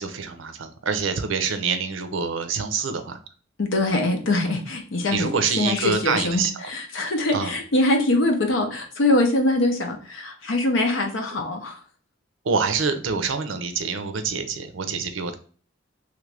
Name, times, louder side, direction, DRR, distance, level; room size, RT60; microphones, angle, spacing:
voice 1, 0.0-3.2 5.1-6.5 7.3-7.6 12.4-15.3, right 5 dB, 80° right, 8 dB, 0.5 m, -26 dB
voice 2, 3.6-11.8, left 2 dB, 80° left, 4 dB, 0.7 m, -23 dB
3.2 x 2.5 x 3.3 m, 0.42 s
head